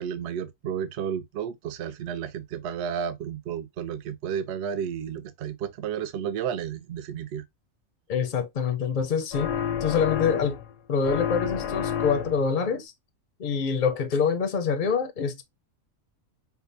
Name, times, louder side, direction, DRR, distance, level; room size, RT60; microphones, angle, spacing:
voice 1, 0.0-7.4, right 8 dB, 65° right, 0.8 m, -32 dB
voice 2, 8.1-10.6 10.9-12.9 13.4-15.4, left 6 dB, 50° left, 0.6 m, -26 dB
sound 1, 9.3-10.7 11.0-12.5, left 8 dB, 75° left, 0.9 m, -30 dB
4.8 x 2.1 x 2.5 m
omnidirectional pair, 1.4 m